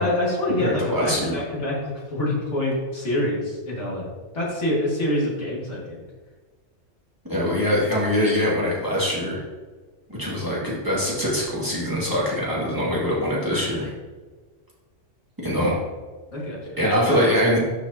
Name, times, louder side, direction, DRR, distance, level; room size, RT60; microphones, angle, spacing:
voice 1, 0.0-6.0 16.3-16.9, left 1 dB, 65° left, -5 dB, 2.2 m, -26 dB
voice 2, 0.6-1.4 7.3-9.4 10.2-13.9 15.4-15.8 16.8-17.6, equal, 15° right, -8 dB, 2.1 m, -23 dB
11.5 x 4.8 x 2.8 m, 1.4 s
omnidirectional pair, 1.3 m